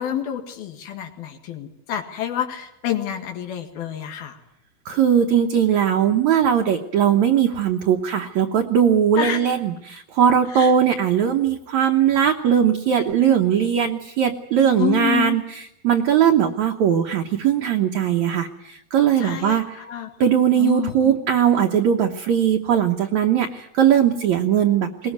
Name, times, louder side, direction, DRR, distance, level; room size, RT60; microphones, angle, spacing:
voice 1, 0.0-4.4 9.2-9.4 10.5-10.7 14.8-15.4 19.2-20.1 20.6-21.1, left 10 dB, 80° left, 5 dB, 3.8 m, -28 dB
voice 2, 4.9-19.8 20.2-25.1, right 8 dB, 65° right, 3 dB, 2.1 m, -19 dB
21.5 x 20.0 x 9.4 m, 0.78 s
omnidirectional pair, 4.3 m